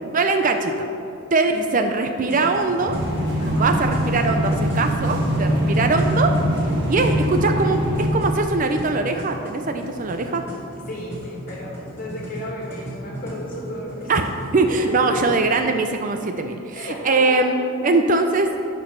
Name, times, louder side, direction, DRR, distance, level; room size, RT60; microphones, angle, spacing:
voice 1, 0.1-0.9 1.3-3.0 3.4-6.3 6.9-10.4 14.1-14.2 14.5-17.6 17.8-18.5, right 3 dB, 35° right, 6 dB, 0.5 m, -21 dB
sound 1, 2.2-15.6, equal, 10° left, 1.9 m, -36 dB
sound 2, 2.9-8.1, equal, 55° right, 1.7 m, -22 dB
voice 2, 5.5-6.0 6.8-7.1 10.9-14.3 14.8-15.6 16.7-17.9, left 1 dB, 40° left, -3 dB, 2.0 m, -34 dB
10.5 x 5.3 x 5.8 m, 2.6 s
head